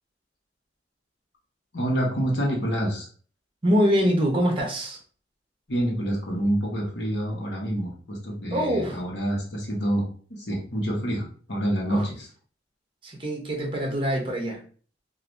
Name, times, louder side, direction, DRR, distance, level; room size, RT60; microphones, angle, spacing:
voice 1, 1.7-3.1 5.7-10.0 10.3-12.3, right 1 dB, 65° left, -2 dB, 1.0 m, -27 dB
voice 2, 3.6-5.0 8.5-9.0 11.9-12.1 13.0-14.6, equal, 30° right, 0 dB, 0.8 m, -24 dB
3.2 x 2.4 x 2.5 m, 0.42 s
head